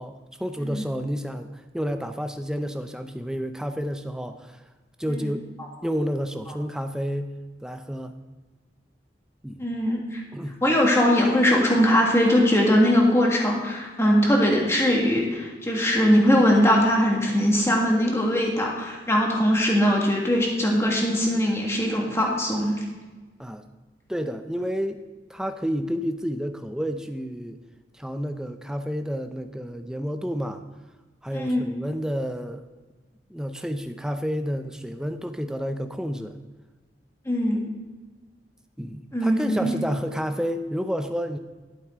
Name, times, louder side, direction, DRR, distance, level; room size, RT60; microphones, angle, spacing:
voice 1, 0.0-4.6 5.0-5.5 5.8-7.3 7.6-8.1 9.4-9.7 10.3-10.6 23.4-23.6 24.1-27.6 27.9-30.6 31.2-32.7 33.3-36.4 38.8-41.4, equal, 5° right, 7 dB, 0.5 m, -30 dB
voice 2, 9.6-10.2 10.6-22.8 31.3-31.6 37.3-37.7 39.1-39.7, equal, 15° left, -1 dB, 1.7 m, -21 dB
12.0 x 8.4 x 3.7 m, 1.3 s
head